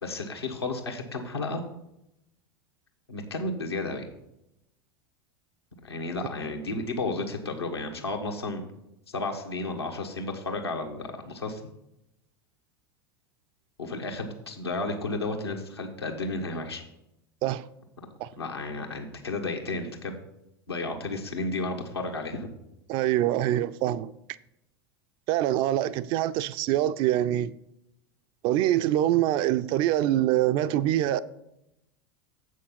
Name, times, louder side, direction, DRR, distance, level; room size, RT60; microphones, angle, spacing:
voice 1, 0.0-1.6 3.1-4.1 5.8-8.6 9.1-11.6 13.8-16.8 18.4-20.2 20.7-22.5, left 2 dB, 80° left, 1.4 m, -32 dB
voice 2, 22.9-24.1 25.3-27.6 28.4-31.2, right 13 dB, 40° right, 0.4 m, -24 dB
7.6 x 6.4 x 5.7 m
figure-of-eight pair, 80°, 13 cm